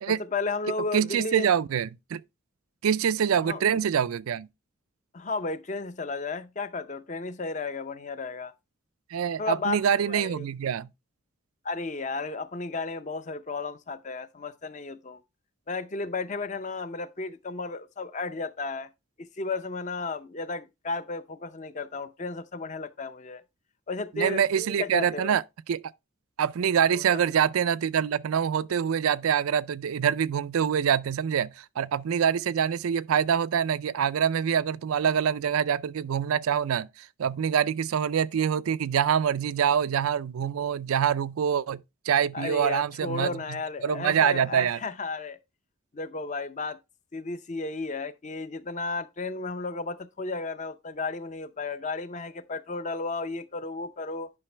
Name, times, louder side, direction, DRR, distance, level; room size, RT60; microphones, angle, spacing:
voice 1, 0.1-1.5 3.4-3.8 5.1-8.5 9.4-10.4 11.6-15.2 15.7-18.9 19.2-23.4 23.9-25.4 26.9-27.2 42.3-45.4 45.9-46.8 47.1-54.3, left 3 dB, 35° left, 0.6 m, -33 dB
voice 2, 0.9-2.2 2.8-4.5 9.1-10.9 24.1-25.8 26.4-43.3 43.8-44.8, right 8 dB, 80° right, 0.4 m, -25 dB
9.7 x 5.8 x 3.3 m
head